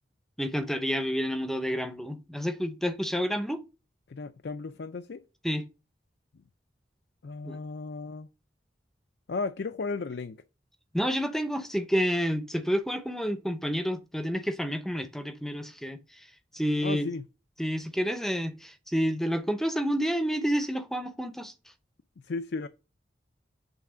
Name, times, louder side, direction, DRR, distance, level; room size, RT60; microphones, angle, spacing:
voice 1, 0.4-3.6 5.4-5.7 7.4-7.6 10.9-16.3 16.5-17.1 17.6-21.5, equal, ahead, 0.7 m, -29 dB
voice 2, 4.1-5.2 7.2-8.3 9.3-10.4 16.8-17.2 22.2-22.7, left 4 dB, 65° left, 0.5 m, -35 dB
8.3 x 3.6 x 6.1 m
head